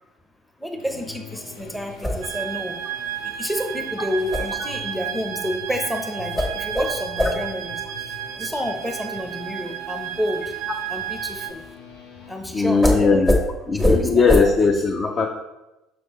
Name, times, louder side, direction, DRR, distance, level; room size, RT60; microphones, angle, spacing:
voice 1, 0.6-2.7 3.2-10.5 10.9-11.6 12.3-13.2 13.9-14.5, equal, 5° left, 4 dB, 0.8 m, -29 dB
sound 1, 0.8-12.7, left 3 dB, 70° left, 1.2 m, -44 dB
sound 2, 1.6-11.7 12.8-13.0 13.3-13.4 13.8-14.0 14.3-14.4, left 1 dB, 20° left, 1.5 m, -26 dB
sound 3, 2.2-11.5, right 10 dB, 65° right, 0.3 m, -32 dB
voice 2, 12.5-13.3 13.7-15.3, left 4 dB, 40° left, 4 dB, 0.6 m, -18 dB
6.2 x 6.2 x 3.0 m, 0.99 s
figure-of-eight pair, 55°, 0 cm